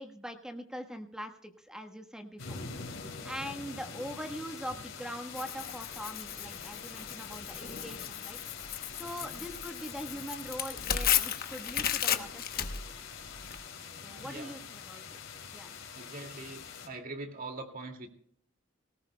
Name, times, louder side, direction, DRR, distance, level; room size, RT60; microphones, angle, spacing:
voice 1, 0.0-2.6 3.2-8.4 9.0-12.7 14.0-15.0 15.5-15.8, equal, 5° right, 4 dB, 1.2 m, -42 dB
sound 1, 2.4-16.9, left 5 dB, 75° left, 2.8 m, -45 dB
Tearing, 5.4-13.6, left 9 dB, 50° left, 1.0 m, -34 dB
voice 2, 13.8-14.6 15.9-18.1, right 2 dB, 45° right, 3 dB, 2.2 m, -43 dB
18.5 x 18.5 x 2.2 m, 0.62 s
head